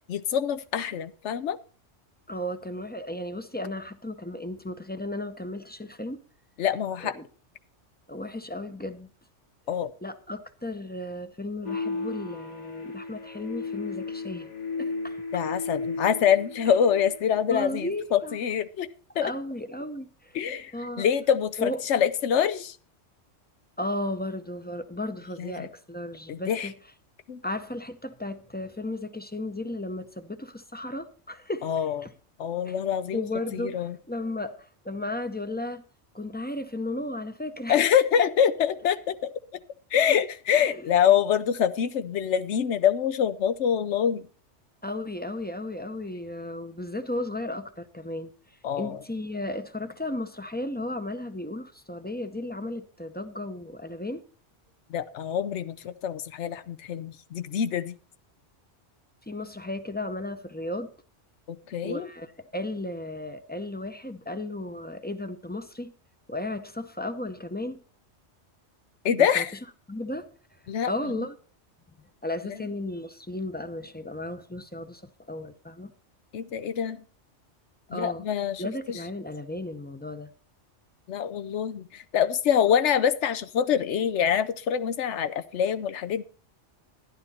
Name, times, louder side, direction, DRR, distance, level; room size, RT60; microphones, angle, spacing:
voice 1, 0.0-1.6 6.6-7.2 9.7-9.9 15.3-18.9 19.2-19.3 20.3-20.7 21.0-22.8 25.4-25.7 26.3-26.7 27.3-27.4 31.6-32.0 32.4-33.2 33.5-34.0 37.7-39.3 39.9-44.3 48.6-49.0 54.9-57.9 61.5-62.1 69.0-69.5 70.7-70.9 76.3-77.0 77.9-79.0 81.1-86.2, left 8 dB, 70° left, 1.0 m, -25 dB
voice 2, 2.3-6.2 7.0-7.2 8.1-9.1 10.0-14.5 14.8-15.2 17.5-18.4 19.2-20.4 20.7-21.1 21.6-21.8 23.8-26.7 27.4-31.7 32.0-32.1 32.7-32.8 33.1-35.8 36.1-37.8 40.5-40.8 44.8-48.3 48.8-54.2 59.3-60.9 61.8-65.9 66.3-67.8 69.2-69.4 69.9-70.3 70.9-71.4 72.2-75.9 77.9-78.3 78.6-80.3, left 1 dB, 10° left, 0.6 m, -34 dB
sound 1, 11.6-17.4, left 3 dB, 35° left, 1.2 m, -34 dB
12.0 x 11.0 x 4.2 m
omnidirectional pair, 1.2 m